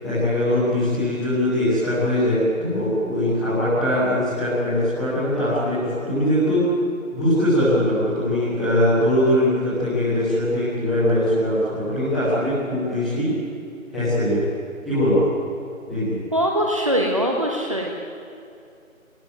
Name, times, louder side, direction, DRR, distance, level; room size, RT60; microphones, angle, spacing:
voice 1, 0.0-6.6 7.1-13.3 13.9-14.4 14.8-15.2 15.9-16.1, left 1 dB, ahead, -18 dB, 1.8 m, -21 dB
voice 2, 16.3-17.9, equal, 25° right, 0 dB, 1.3 m, -22 dB
24.0 x 18.0 x 9.2 m, 2.6 s
figure-of-eight pair, 165°, 41 cm